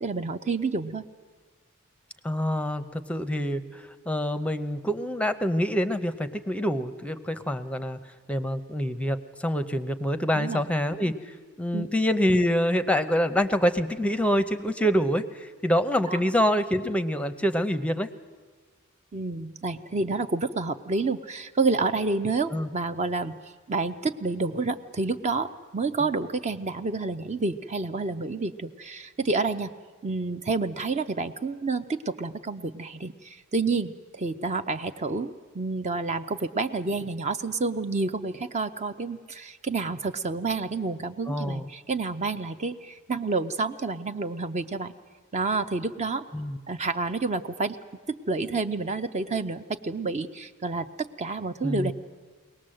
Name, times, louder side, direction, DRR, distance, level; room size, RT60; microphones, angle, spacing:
voice 1, 0.0-1.0 10.3-10.6 11.7-11.9 16.1-16.2 19.1-23.3 23.7-29.7 30.0-44.9 45.3-46.3 46.7-47.8 48.3-51.9, right 3 dB, 30° right, 9 dB, 0.5 m, -29 dB
voice 2, 2.2-8.0 8.3-18.1 22.5-22.7 41.3-41.7 46.3-46.6 51.6-51.9, equal, 5° left, 11 dB, 0.6 m, -26 dB
22.5 x 18.5 x 7.7 m, 1.4 s
head